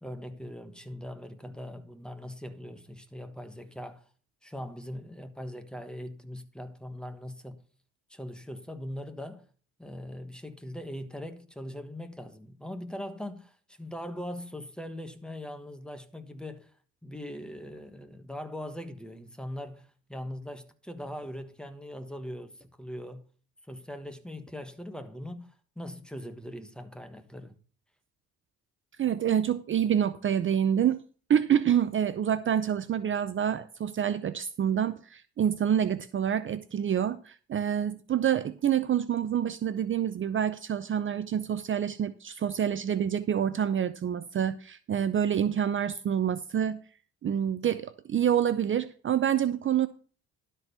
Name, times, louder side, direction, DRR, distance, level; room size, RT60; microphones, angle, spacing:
voice 1, 0.0-4.1 4.4-7.6 8.1-9.4 9.8-16.7 17.0-23.2 23.7-27.6, left 1 dB, 5° left, 1.3 m, -41 dB
voice 2, 29.0-31.0 31.3-46.8 47.2-49.9, right 9 dB, 40° right, 0.6 m, -27 dB
12.0 x 4.5 x 6.8 m
cardioid pair, 90°, 30 cm